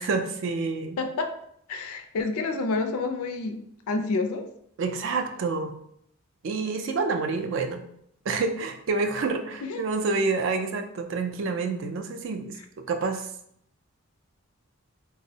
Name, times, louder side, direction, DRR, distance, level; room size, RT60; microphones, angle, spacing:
voice 1, 0.0-1.0 4.8-5.8 6.4-7.9 8.3-13.3, right 4 dB, 55° right, 6 dB, 0.3 m, -28 dB
voice 2, 1.0-1.4 1.7-4.5 9.7-9.8, left 3 dB, 75° left, 6 dB, 0.4 m, -29 dB
3.5 x 2.0 x 2.7 m, 0.72 s
head